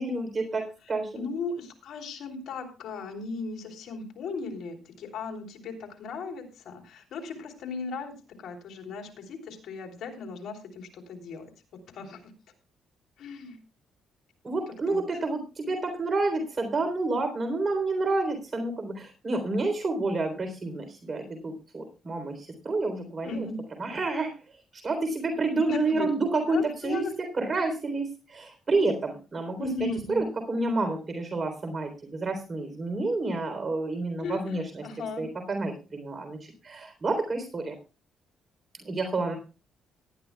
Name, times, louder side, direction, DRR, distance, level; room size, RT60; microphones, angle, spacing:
voice 1, 0.0-1.3 14.4-23.5 23.8-24.6 24.8-27.1 27.3-29.7 30.1-34.8 35.2-37.8 38.8-39.4, right 2 dB, 35° right, 5 dB, 3.6 m, -29 dB
voice 2, 1.1-8.1 8.4-11.5 11.9-12.2 13.2-13.6 14.9-15.0 23.2-23.6 25.7-26.1 26.5-27.1 29.6-30.2 34.2-35.3, left 4 dB, 70° left, 3 dB, 3.3 m, -36 dB
19.0 x 11.5 x 2.3 m, 0.33 s
cardioid pair, 90°, 0 cm